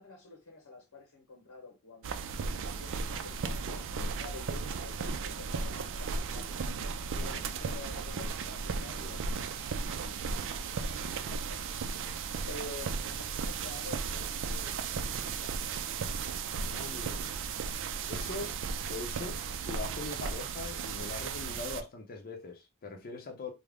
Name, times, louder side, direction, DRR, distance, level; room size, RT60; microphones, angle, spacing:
voice 1, 0.0-6.6 7.2-11.7 12.5-15.7, left 2 dB, 70° left, 0.9 m, -49 dB
sound 1, 2.0-21.8, right 5 dB, 60° right, 0.4 m, -35 dB
voice 2, 16.6-17.3 18.1-18.5 18.8-19.4 19.6-23.5, left 3 dB, 45° left, 0.6 m, -41 dB
3.6 x 2.1 x 3.4 m
head